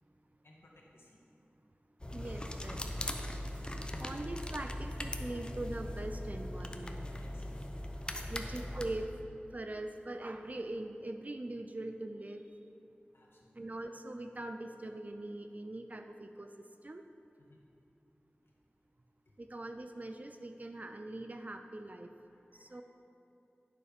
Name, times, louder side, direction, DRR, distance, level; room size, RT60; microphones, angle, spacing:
voice 1, 0.4-1.2 7.1-7.5 8.0-8.4 13.1-13.6 17.5-17.6 22.3-22.8, left 1 dB, 85° left, -3 dB, 1.6 m, -62 dB
sound 1, 2.0-9.1, left 1 dB, 25° left, 0.7 m, -40 dB
voice 2, 2.1-3.2 3.8-7.1 8.3-9.1 9.5-12.4 13.6-16.5 16.8-17.0 19.4-22.1 22.6-22.8, right 2 dB, 40° right, 6 dB, 0.5 m, -42 dB
8.9 x 6.8 x 5.1 m, 2.8 s
wide cardioid pair, 55°, 4 cm